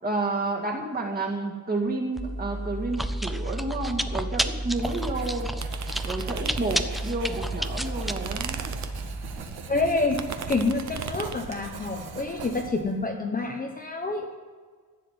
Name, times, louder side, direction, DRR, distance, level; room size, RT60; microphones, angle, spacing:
voice 1, 0.0-5.5 6.0-8.6, right 2 dB, 20° right, 0 dB, 2.1 m, -30 dB
Chewing mastication, 2.2-9.4, right 1 dB, ahead, 0.3 m, -31 dB
Writing, 4.8-13.0, right 4 dB, 60° right, 2.0 m, -41 dB
pentax me - f-stop, 5.6-7.1 7.5-11.5, right 7 dB, 40° right, 0.9 m, -37 dB
voice 2, 9.7-10.2 10.5-14.3, left 3 dB, 20° left, 1 dB, 1.0 m, -27 dB
15.0 x 7.5 x 9.4 m, 1.5 s
cardioid pair, 175°, 42 cm